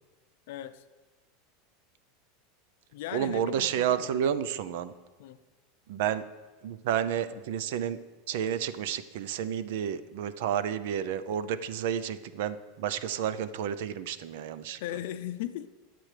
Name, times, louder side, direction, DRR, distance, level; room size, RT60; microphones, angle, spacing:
voice 1, 0.5-0.8 2.9-4.2 5.2-5.4 7.3-7.4 14.8-15.7, left 12 dB, 60° left, 11 dB, 0.5 m, -37 dB
voice 2, 3.1-4.9 5.9-6.2 6.6-8.0 8.3-14.8, right 9 dB, 60° right, 14 dB, 0.5 m, -30 dB
20.5 x 7.6 x 3.3 m, 1.3 s
supercardioid pair, 175°, 0 cm